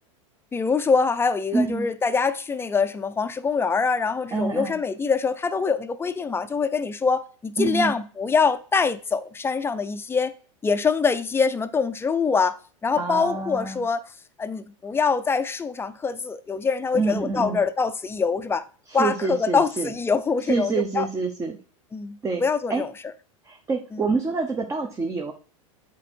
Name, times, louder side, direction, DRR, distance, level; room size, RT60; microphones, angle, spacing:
voice 1, 0.5-10.3 10.6-14.0 14.4-18.6 18.9-21.1 21.9-22.9 23.9-24.1, left 5 dB, 15° left, 0.6 m, -24 dB
voice 2, 1.5-1.9 4.3-4.8 7.6-7.9 13.0-13.8 16.9-17.6 18.9-19.9 20.4-21.6 22.2-22.4 22.7-22.8 23.4-25.3, right 4 dB, 20° right, 0.9 m, -26 dB
7.4 x 4.4 x 4.5 m
hypercardioid pair, 110°, 17 cm